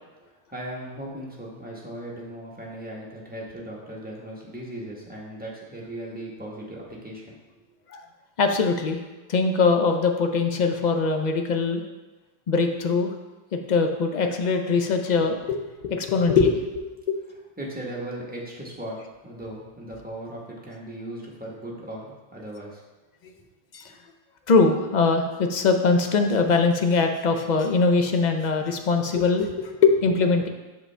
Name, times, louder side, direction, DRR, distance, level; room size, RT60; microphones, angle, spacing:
voice 1, 0.3-7.4 17.6-22.8 23.9-24.0, right 1 dB, 10° right, -4 dB, 1.1 m, -37 dB
voice 2, 8.4-9.0 9.3-11.8 12.5-13.1 13.5-17.2 23.7-23.9 24.5-30.5, left 4 dB, 50° left, 5 dB, 0.6 m, -22 dB
6.9 x 4.9 x 3.3 m, 1.2 s
omnidirectional pair, 1.1 m